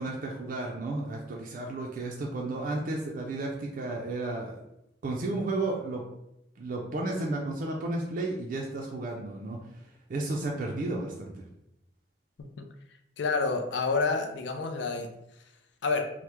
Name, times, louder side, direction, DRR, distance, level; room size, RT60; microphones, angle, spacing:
voice 1, 0.0-4.6 5.0-6.0 6.6-9.8 10.1-11.4, right 2 dB, 45° right, -2 dB, 0.4 m, -33 dB
voice 2, 13.2-15.1 15.8-16.0, left 4 dB, 75° left, 5 dB, 0.4 m, -28 dB
2.9 x 2.1 x 3.3 m, 0.82 s
head